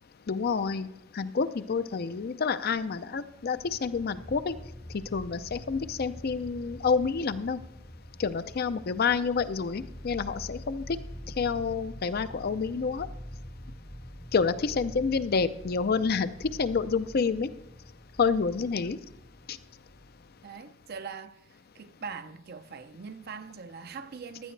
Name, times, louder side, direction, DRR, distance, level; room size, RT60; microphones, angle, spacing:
voice 1, 0.3-0.9 1.1-4.5 4.9-7.6 8.2-11.0 11.4-13.1 14.3-16.3 16.6-17.5 18.2-19.0 19.5-19.6, left 5 dB, 50° left, 0.5 m, -28 dB
sound 1, 3.2-20.6, equal, 5° left, 0.7 m, -45 dB
voice 2, 20.4-24.5, right 5 dB, 50° right, 0.6 m, -42 dB
15.5 x 11.0 x 3.3 m
head